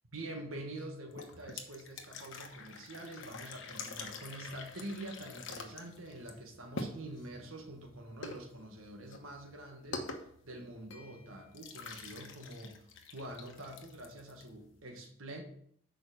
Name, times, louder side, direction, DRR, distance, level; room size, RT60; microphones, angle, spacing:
voice 1, 0.1-15.4, right 1 dB, 80° right, 3 dB, 1.4 m, -46 dB
sound 1, 1.1-14.8, left 3 dB, 65° left, 1.0 m, -47 dB
6.6 x 4.9 x 6.2 m, 0.65 s
head